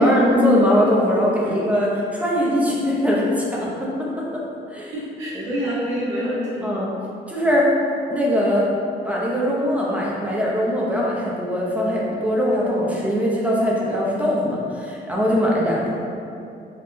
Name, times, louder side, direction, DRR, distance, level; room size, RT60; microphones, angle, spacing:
voice 1, 0.0-4.1 4.7-4.9 5.3-5.5 6.6-6.9 7.3-7.7 8.1-8.6 9.0-15.9, equal, 5° right, -5 dB, 0.6 m, -21 dB
voice 2, 4.9-6.7 15.6-15.7, equal, 85° right, -9 dB, 1.1 m, -26 dB
3.5 x 2.2 x 2.6 m, 2.6 s
cardioid pair, 90°, 20 cm